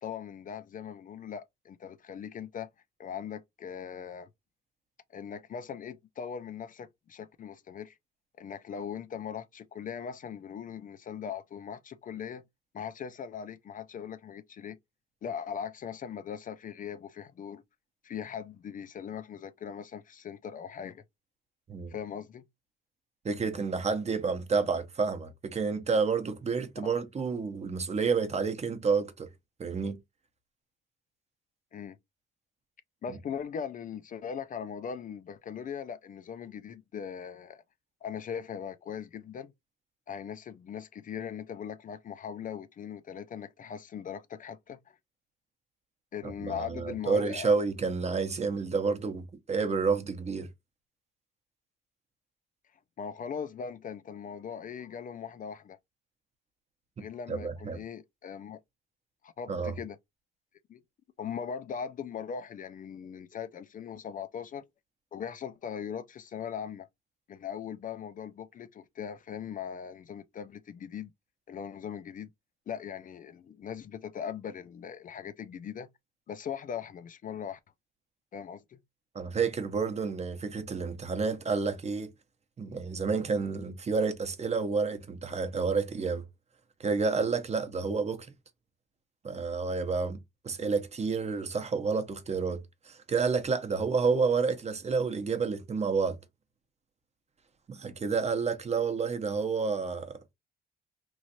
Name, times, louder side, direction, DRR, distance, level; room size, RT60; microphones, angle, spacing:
voice 1, 0.0-2.7 3.0-4.3 5.1-8.0 8.4-12.4 12.7-14.8 15.2-17.6 18.0-21.0 21.9-22.5 26.8-26.9 31.7-32.0 33.0-37.6 38.0-39.5 40.1-45.0 46.1-47.6 53.0-55.8 57.0-58.6 59.2-60.0 60.7-60.8 61.2-64.7 65.1-66.9 67.3-71.1 71.5-72.3 72.7-75.9 76.3-77.6 78.3-78.8, left 7 dB, 45° left, 0.4 m, -40 dB
voice 2, 23.2-29.3 29.6-30.0 46.4-50.5 57.3-57.8 59.5-59.7 79.1-82.1 82.6-86.2 86.8-88.3 89.2-92.6 92.9-96.2 97.7-100.1, right 5 dB, 35° right, 0.7 m, -29 dB
3.1 x 2.5 x 2.7 m
cardioid pair, 90°, 20 cm